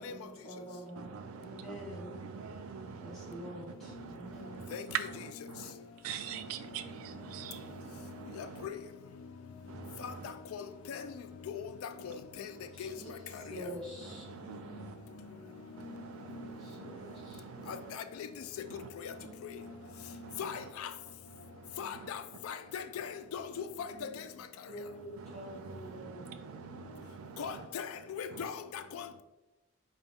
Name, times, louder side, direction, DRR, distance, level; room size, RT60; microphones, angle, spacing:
voice 1, 0.0-2.3 3.0-4.7 12.7-14.3 16.3-17.4 19.2-19.3 21.7-21.9 23.7-24.3 24.7-26.4, equal, ahead, 1.4 m, -47 dB
voice 2, 1.0-5.8 6.0-8.7 9.7-10.3 13.4-13.5 14.0-18.0 18.7-20.7 21.4-22.1 24.7-27.7 28.3-28.5, right 7 dB, 80° right, 0.3 m, -45 dB
voice 3, 4.7-5.1 8.4-8.7 10.0-10.1 10.5-11.1 11.5-11.7 12.0-12.5 12.8-12.9 16.3-16.4 17.7-18.3 19.0-19.1 20.4-20.9 21.8-24.1 27.4-29.2, left 7 dB, 85° left, 0.3 m, -40 dB
5.1 x 2.3 x 3.5 m
head